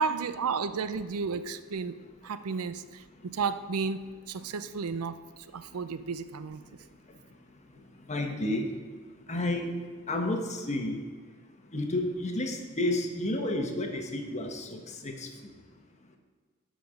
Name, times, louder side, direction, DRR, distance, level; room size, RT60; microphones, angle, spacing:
voice 1, 0.0-2.0 2.2-5.2 5.5-6.6, right 5 dB, 80° right, 13 dB, 0.5 m, -32 dB
voice 2, 8.1-8.7 9.3-9.7 10.1-11.0 11.7-15.3, left 1 dB, 30° left, 4 dB, 1.1 m, -31 dB
11.0 x 5.2 x 6.4 m, 1.6 s
head